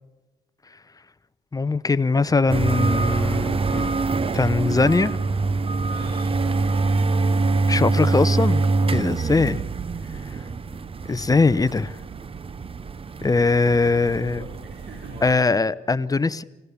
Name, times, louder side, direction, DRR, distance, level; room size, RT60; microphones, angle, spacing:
voice 1, 1.5-4.0 4.3-5.2 7.7-8.7 8.9-9.6 10.3-10.4 11.1-12.0 13.2-14.4 15.2-16.4, left 3 dB, 20° left, 15 dB, 0.7 m, -21 dB
sound 1, 2.5-15.3, right 3 dB, 30° right, 0.7 m, -25 dB
voice 2, 5.8-6.9 8.8-9.1 14.3-15.7, right 1 dB, 65° right, 1 dB, 3.8 m, -43 dB
28.0 x 16.0 x 7.0 m, 1.1 s
cardioid pair, 90°, 20 cm